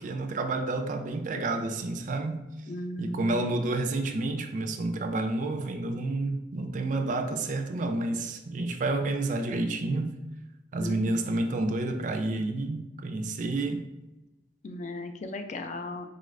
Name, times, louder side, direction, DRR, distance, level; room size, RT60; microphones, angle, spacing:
voice 1, 0.0-2.4 3.0-10.2 10.7-13.8, right 2 dB, 45° right, 6 dB, 0.4 m, -30 dB
voice 2, 2.7-3.5 10.8-11.1 14.6-16.1, left 1 dB, 40° left, 7 dB, 0.3 m, -36 dB
4.0 x 2.4 x 3.1 m, 1.0 s
head